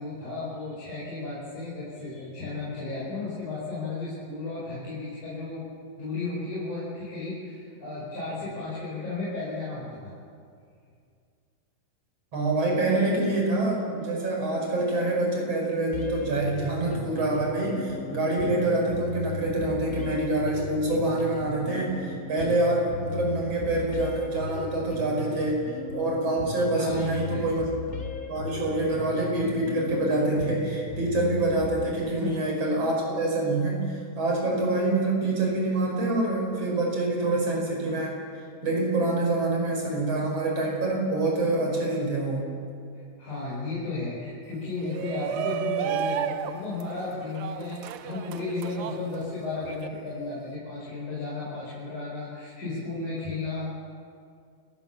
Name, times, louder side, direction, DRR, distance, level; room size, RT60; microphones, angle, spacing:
voice 1, 0.0-5.6 6.0-10.1 26.7-27.5 32.2-32.3 43.2-53.7, left 3 dB, 60° left, -8 dB, 6.7 m, -34 dB
voice 2, 12.3-25.6 25.9-27.7 28.3-38.1 38.6-42.5, right 2 dB, 45° right, -1 dB, 6.4 m, -26 dB
sound 1, 15.9-31.9, left 3 dB, 35° left, 1.2 m, -37 dB
Shout, 44.8-49.9, right 10 dB, 75° right, 1.7 m, -33 dB
30.0 x 15.5 x 7.3 m, 2.3 s
omnidirectional pair, 3.9 m